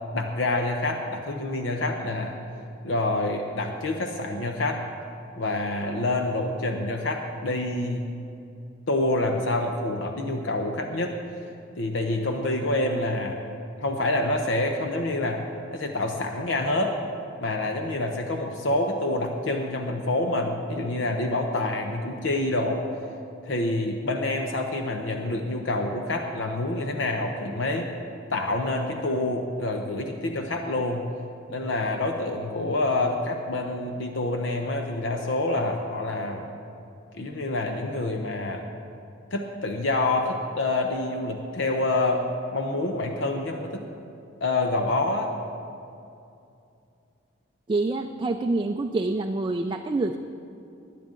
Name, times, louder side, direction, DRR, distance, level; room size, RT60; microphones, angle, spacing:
voice 1, 0.1-2.4 2.8-4.8 5.3-8.0 8.9-11.1 11.7-13.4 13.8-15.5 15.7-17.0 17.4-22.8 23.4-27.9 28.3-31.0 31.5-36.5 37.1-38.6 39.3-42.3 42.5-43.8 44.4-45.3, left 2 dB, 75° left, 3 dB, 0.8 m, -27 dB
voice 2, 47.7-50.2, right 2 dB, 25° right, 4 dB, 0.3 m, -26 dB
20.0 x 9.3 x 3.8 m, 2.6 s
head